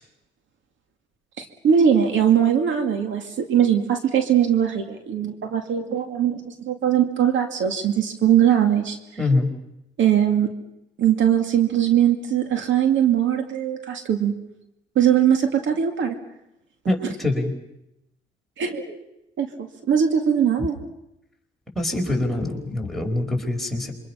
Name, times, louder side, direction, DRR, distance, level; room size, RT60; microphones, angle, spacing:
voice 1, 1.4-9.0 10.0-10.5 11.0-14.3 15.0-16.2 18.6-19.0 19.4-20.8, right 9 dB, 75° right, 5 dB, 2.3 m, -20 dB
voice 2, 9.2-9.5 16.9-17.5 21.7-23.9, left 2 dB, ahead, -1 dB, 4.8 m, -24 dB
27.0 x 24.5 x 5.8 m, 0.87 s
cardioid pair, 90°, 20 cm